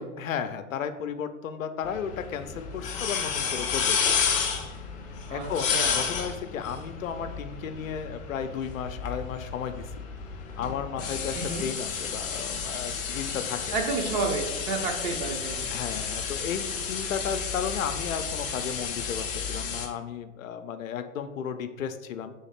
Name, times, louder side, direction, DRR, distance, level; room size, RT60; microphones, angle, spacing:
voice 1, 0.2-4.2 5.3-10.0 10.6-13.8 15.7-22.3, left 7 dB, 80° left, 9 dB, 0.6 m, -34 dB
sound 1, 1.8-19.9, left 6 dB, 20° left, 0.4 m, -31 dB
voice 2, 5.3-6.1 11.3-11.7 13.7-15.6, right 4 dB, 35° right, 3 dB, 0.7 m, -31 dB
3.5 x 3.2 x 4.2 m, 1.2 s
hypercardioid pair, 120°, 39 cm